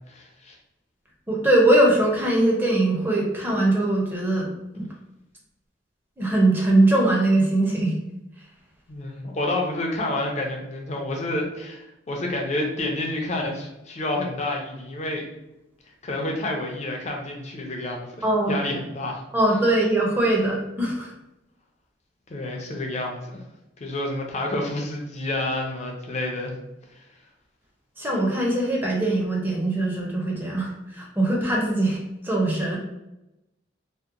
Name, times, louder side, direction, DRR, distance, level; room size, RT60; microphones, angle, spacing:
voice 1, 0.1-0.6 8.9-15.2 16.0-19.2 22.3-23.4 23.8-26.5 27.0-27.1, left 1 dB, 40° left, 1 dB, 0.5 m, -29 dB
voice 2, 1.3-4.5 4.7-4.9 6.2-7.9 18.2-18.6 19.3-21.1 28.0-32.8, right 1 dB, 10° right, -2 dB, 0.5 m, -21 dB
2.8 x 2.1 x 2.4 m, 0.92 s
head